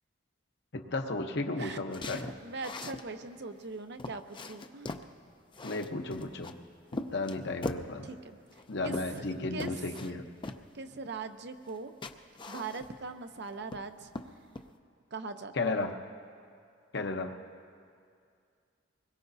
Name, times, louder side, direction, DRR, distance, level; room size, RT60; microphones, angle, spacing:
voice 1, 0.7-2.2 5.6-6.5 7.1-8.1 8.7-10.3 15.5-15.9 16.9-17.4, left 2 dB, 60° left, 5 dB, 1.0 m, -34 dB
sound 1, 1.9-3.1 3.6-3.7 4.0-5.1 5.5-6.5 6.9-7.9 8.5-9.3 9.6-10.1 10.4-10.6 11.6-11.8 12.0-13.1 13.5-13.9 14.1-14.7, left 2 dB, 25° left, 0.5 m, -40 dB
voice 2, 2.1-4.9 8.0-9.2 9.5-10.2 10.7-11.9 12.5-14.1 15.1-15.5, right 4 dB, 60° right, 8 dB, 0.8 m, -41 dB
24.5 x 21.5 x 2.7 m, 2.3 s
head